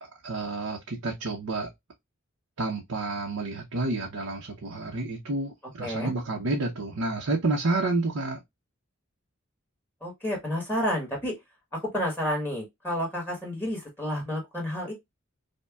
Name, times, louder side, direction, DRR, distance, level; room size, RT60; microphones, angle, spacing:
voice 1, 0.0-1.7 2.6-8.4, right 2 dB, 80° right, 0.8 m, -30 dB
voice 2, 5.8-6.1 10.0-11.3 11.8-14.9, equal, 10° left, 1.3 m, -30 dB
5.2 x 2.2 x 2.3 m
head